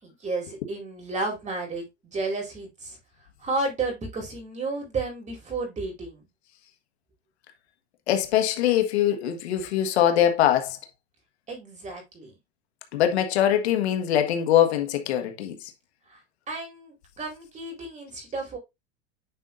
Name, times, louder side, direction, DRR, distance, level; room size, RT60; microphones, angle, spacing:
voice 1, 0.0-3.0 3.4-6.2 11.5-12.3 16.1-16.2 16.5-18.6, right 3 dB, 20° right, 4.3 m, -32 dB
voice 2, 8.1-10.8 12.9-15.7, left 10 dB, 85° left, 1.6 m, -22 dB
9.6 x 5.5 x 2.6 m
supercardioid pair, 125°, 32 cm